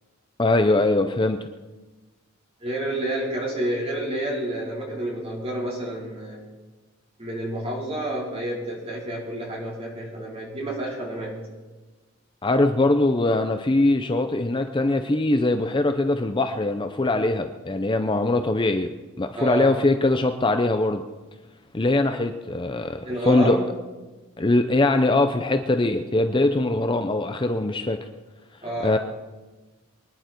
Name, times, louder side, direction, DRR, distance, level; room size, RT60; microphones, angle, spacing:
voice 1, 0.4-1.5 12.4-18.9 19.2-21.0 21.7-23.6 24.4-28.0 28.8-29.0, left 2 dB, 20° left, 7 dB, 0.6 m, -22 dB
voice 2, 2.6-6.4 7.2-11.4 19.4-19.7 23.0-23.7 28.6-29.0, right 1 dB, 30° right, -4 dB, 4.5 m, -29 dB
24.5 x 10.5 x 4.5 m, 1.2 s
head